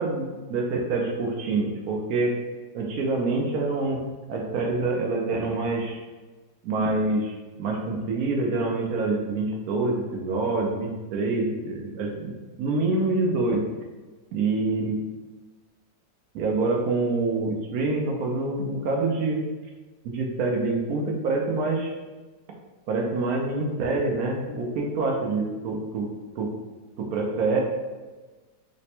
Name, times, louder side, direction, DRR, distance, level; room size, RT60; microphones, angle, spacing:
voice 1, 0.0-2.3 2.7-4.0 4.3-6.0 6.6-7.3 7.6-12.3 12.6-13.6 14.3-15.0 16.3-19.4 20.0-21.9 22.9-26.1 26.4-26.5 27.0-27.6, right 3 dB, 70° right, 0 dB, 0.9 m, -26 dB
3.3 x 2.1 x 4.2 m, 1.3 s
omnidirectional pair, 1.9 m